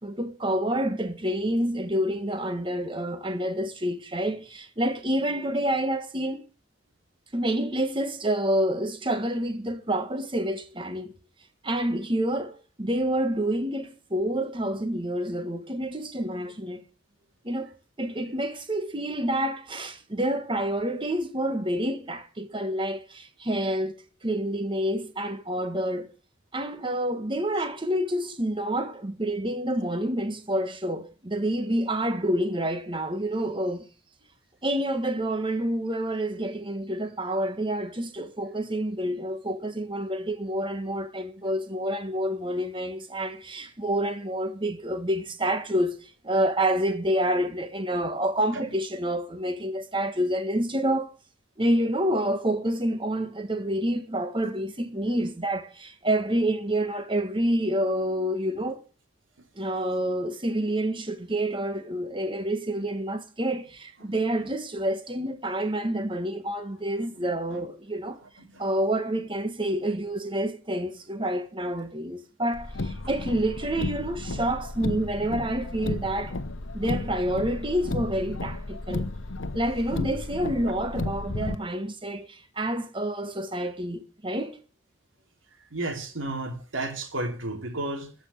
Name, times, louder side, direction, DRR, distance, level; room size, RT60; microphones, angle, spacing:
voice 1, 0.0-6.4 7.3-11.1 11.6-16.8 17.4-17.7 18.0-26.1 26.5-33.9 34.6-51.1 51.6-58.8 59.5-68.2 68.6-76.4 76.7-79.1 79.5-84.6, right 1 dB, 25° right, 1.6 m, -28 dB
voice 2, 64.0-64.5 67.1-67.6 68.2-68.6 85.7-88.1, right 2 dB, 90° right, 3.3 m, -34 dB
Car, 72.5-81.6, left 2 dB, 80° left, 1.0 m, -33 dB
14.0 x 6.2 x 8.5 m
head